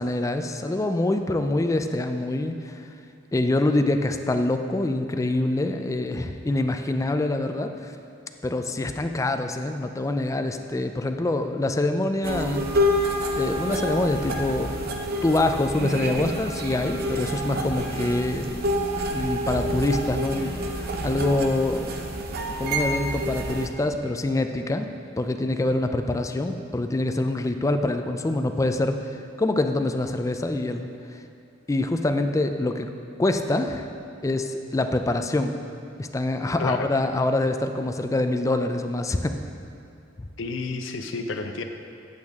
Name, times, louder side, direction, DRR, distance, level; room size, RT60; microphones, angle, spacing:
voice 1, 0.0-2.9 3.3-7.9 8.4-12.7 13.4-14.7 15.2-18.6 19.1-20.5 21.0-22.0 22.5-30.9 31.7-32.9 33.2-33.9 34.2-35.5 36.0-39.3, left 2 dB, 15° left, 7 dB, 0.3 m, -25 dB
sound 1, 12.2-23.7, equal, 55° right, 0.7 m, -28 dB
voice 2, 40.4-41.6, left 3 dB, 75° left, 6 dB, 0.6 m, -30 dB
8.4 x 8.0 x 3.6 m, 2.5 s
head